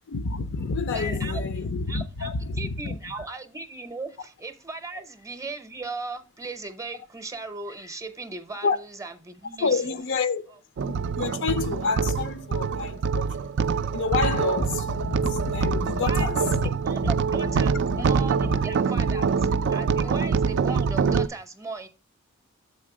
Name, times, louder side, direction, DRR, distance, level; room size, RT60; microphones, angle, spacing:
voice 1, 0.1-3.3 8.6-8.8 9.6-10.5 10.8-13.5 13.9-16.7 17.0-17.1 17.9-18.0 18.4-18.6 19.2-19.6 20.0-20.1, left 4 dB, 60° left, 0.5 m, -29 dB
voice 2, 0.9-2.3 2.6-9.8 16.0-16.5 16.9-21.9, right 3 dB, 15° right, 0.7 m, -37 dB
sound 1, 10.8-21.3, right 5 dB, 55° right, 0.3 m, -25 dB
7.3 x 4.3 x 4.9 m
head